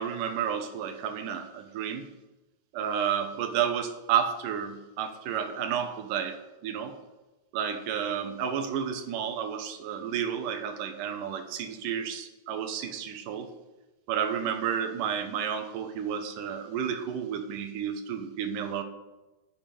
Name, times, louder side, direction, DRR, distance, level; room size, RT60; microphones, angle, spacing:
voice 1, 0.0-2.1 2.7-6.4 6.6-7.0 7.5-13.5 14.1-18.8, right 8 dB, 80° right, 7 dB, 2.5 m, -31 dB
8.4 x 6.5 x 7.6 m, 1.1 s
omnidirectional pair, 3.8 m